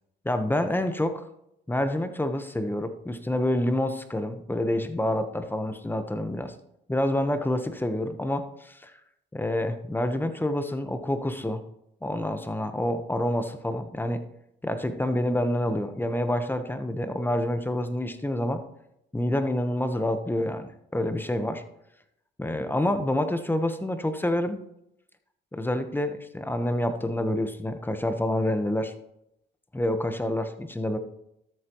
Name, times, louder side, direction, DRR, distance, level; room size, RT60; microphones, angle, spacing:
voice 1, 0.2-1.2 1.7-6.5 6.9-8.9 9.3-11.6 12.0-14.2 14.6-18.6 19.1-21.6 22.4-24.6 25.5-28.9 29.7-31.0, left 1 dB, 10° left, 8 dB, 1.0 m, -27 dB
13.0 x 8.2 x 3.0 m, 0.80 s
cardioid pair, 90°, 20 cm